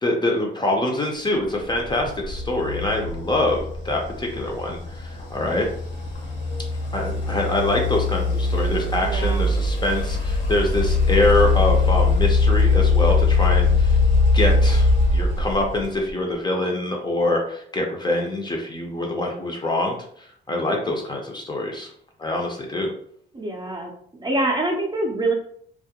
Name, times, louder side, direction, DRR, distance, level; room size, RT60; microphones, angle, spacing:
voice 1, 0.0-5.7 6.9-14.0 14.3-21.9 22.2-22.9, left 1 dB, 20° left, 1 dB, 0.6 m, -24 dB
sound 1, 1.7-16.1, left 3 dB, 65° left, 0.9 m, -21 dB
voice 2, 9.0-9.5 23.3-23.9 24.2-25.3, right 2 dB, 20° right, 0 dB, 0.6 m, -25 dB
2.3 x 2.1 x 2.8 m, 0.63 s
cardioid pair, 90°, 20 cm